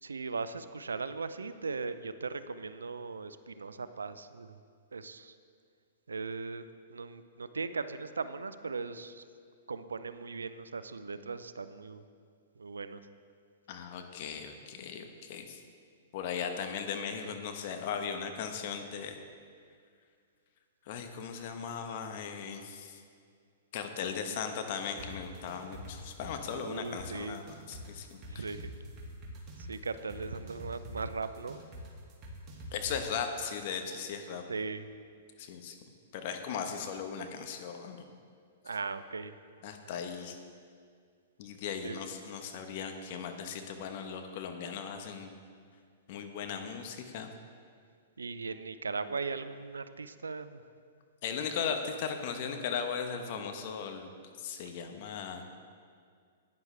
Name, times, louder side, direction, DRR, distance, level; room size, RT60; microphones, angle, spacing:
voice 1, 0.0-4.6 4.9-5.3 6.1-9.2 9.7-12.0 12.6-13.0 26.5-27.4 28.3-28.7 29.6-31.6 34.5-34.9 38.6-39.3 41.8-42.0 48.2-50.6 54.6-54.7, right 4 dB, 90° right, 12 dB, 0.4 m, -38 dB
voice 2, 13.7-15.6 16.1-19.2 20.9-23.0 23.7-28.4 32.7-34.4 35.4-35.8 36.1-38.0 39.6-40.4 41.4-45.3 46.1-47.3 51.2-54.1 54.4-55.4, left 6 dB, 50° left, 6 dB, 1.0 m, -37 dB
sound 1, 25.0-32.9, left 1 dB, 25° right, 2.1 m, -45 dB
11.5 x 9.6 x 3.3 m, 2.2 s
hypercardioid pair, 120°, 0 cm